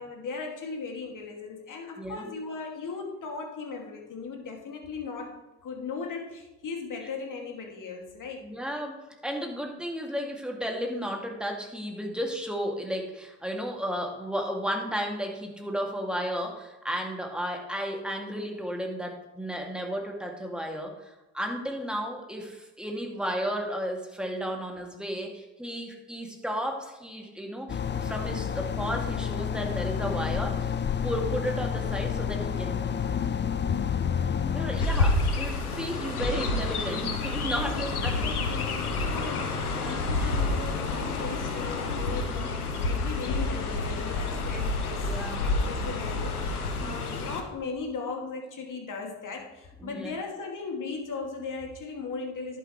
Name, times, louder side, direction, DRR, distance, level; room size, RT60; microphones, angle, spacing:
voice 1, 0.0-8.5 36.6-36.7 37.5-45.1 45.4-52.6, left 4 dB, 45° left, 2 dB, 2.5 m, -38 dB
voice 2, 2.0-2.3 8.4-8.9 9.2-30.7 31.0-33.0 34.5-38.3 39.7-40.3 42.2-42.5 45.0-45.4 46.8-46.9 49.8-50.1, equal, ahead, 1 dB, 2.5 m, -33 dB
sound 1, 27.7-34.9, left 8 dB, 25° left, 0.6 m, -29 dB
Chirp tweet, 34.8-47.4, left 3 dB, 90° left, 1.0 m, -29 dB
11.0 x 9.5 x 3.3 m, 1.1 s
hypercardioid pair, 50°, 43 cm